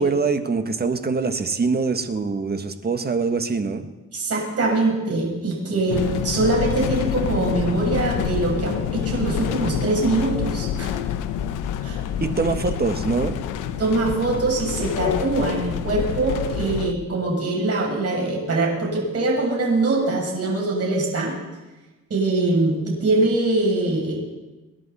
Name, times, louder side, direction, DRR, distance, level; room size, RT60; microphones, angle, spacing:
voice 1, 0.0-3.9 12.2-13.4, right 4 dB, 30° right, 8 dB, 1.5 m, -24 dB
voice 2, 4.1-10.9 11.8-12.0 13.8-21.3 22.1-24.2, right 2 dB, 55° right, -2 dB, 7.6 m, -23 dB
sound 1, 5.9-16.9, left 9 dB, 85° left, 1.0 m, -27 dB
27.0 x 11.0 x 4.3 m, 1.1 s
cardioid pair, 90°, 30 cm